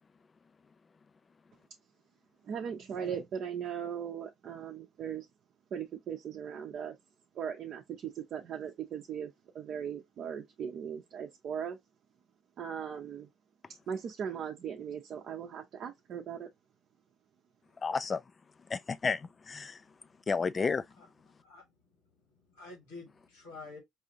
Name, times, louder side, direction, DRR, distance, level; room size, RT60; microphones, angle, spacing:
voice 1, 2.4-5.3 5.7-7.0 7.3-11.8 12.6-13.3 13.9-16.5, right 8 dB, 55° right, 0.6 m, -38 dB
voice 2, 17.8-18.2 18.7-19.8 20.3-20.8, left 5 dB, 35° left, 0.3 m, -31 dB
voice 3, 21.4-21.7 22.2-23.8, left 3 dB, 80° left, 1.9 m, -49 dB
4.8 x 2.5 x 2.7 m
hypercardioid pair, 55°, 0 cm